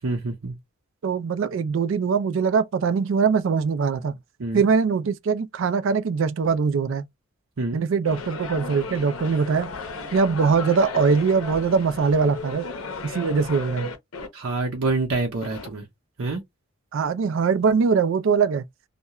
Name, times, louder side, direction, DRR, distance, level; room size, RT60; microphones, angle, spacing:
voice 1, 0.0-0.6 4.4-4.7 7.6-7.8 14.3-15.9 16.2-16.4, right 3 dB, 85° right, 0.7 m, -27 dB
voice 2, 1.0-4.1 4.5-7.0 7.7-9.7 10.1-12.7 13.0-13.9 16.9-18.6, right 5 dB, 65° right, 0.3 m, -22 dB
sound 1, 8.0-14.3 15.4-15.7, left 3 dB, 85° left, 0.6 m, -35 dB
2.3 x 2.1 x 2.8 m
head